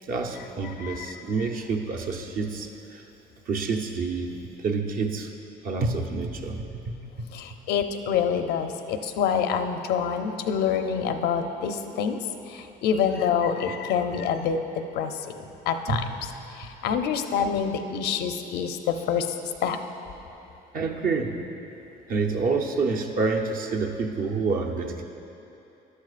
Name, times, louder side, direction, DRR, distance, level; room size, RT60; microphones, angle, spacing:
voice 1, 0.0-3.0 3.5-5.3 5.6-7.3 15.9-16.0 20.7-21.4 22.1-25.0, right 4 dB, 55° right, 2 dB, 0.9 m, -28 dB
voice 2, 0.6-1.1 7.3-12.2 12.5-15.3 15.7-16.0 16.5-19.3 19.6-19.8, left 7 dB, 80° left, 7 dB, 0.6 m, -26 dB
13.0 x 11.0 x 2.5 m, 2.9 s
cardioid pair, 110°, 17 cm